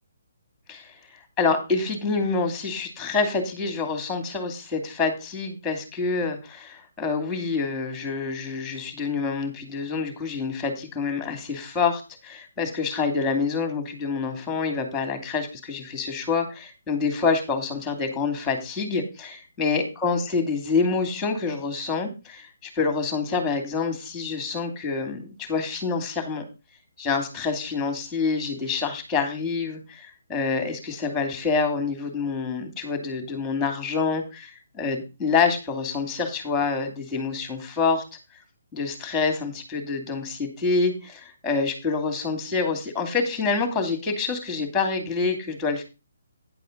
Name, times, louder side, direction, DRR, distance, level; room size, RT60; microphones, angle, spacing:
voice 1, 1.4-26.4 27.0-38.0 38.7-45.8, left 4 dB, 10° left, 6 dB, 2.6 m, -27 dB
10.0 x 7.6 x 4.0 m, 0.29 s
figure-of-eight pair, 140°, 0 cm